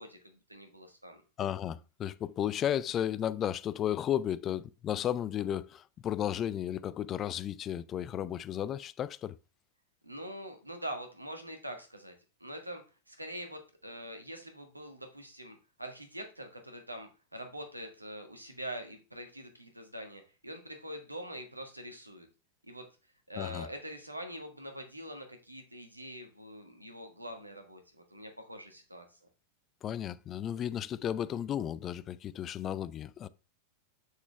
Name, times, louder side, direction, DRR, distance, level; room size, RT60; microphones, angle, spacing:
voice 1, 0.0-1.2 10.0-12.1 12.4-22.3 22.6-22.9 23.3-29.2, equal, 85° right, 1.5 m, -44 dB
voice 2, 1.4-9.4 23.4-23.7 29.8-33.3, left 10 dB, 30° left, 0.4 m, -34 dB
7.3 x 6.4 x 3.4 m
figure-of-eight pair, 90°, 0 cm